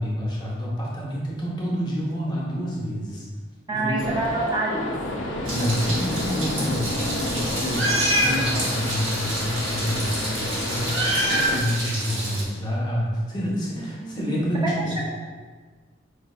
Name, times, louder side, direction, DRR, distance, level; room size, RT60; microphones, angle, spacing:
voice 1, 0.0-3.2 3.7-4.0 5.5-14.9, equal, 25° left, -5 dB, 0.8 m, -28 dB
voice 2, 3.7-4.9 13.8-15.1, right 2 dB, 20° right, -5 dB, 0.5 m, -28 dB
sound 1, 4.0-11.6, left 2 dB, 80° left, 0.5 m, -30 dB
Meow, 5.5-12.4, right 1 dB, 80° right, 1.0 m, -27 dB
4.8 x 3.1 x 2.3 m, 1.4 s
head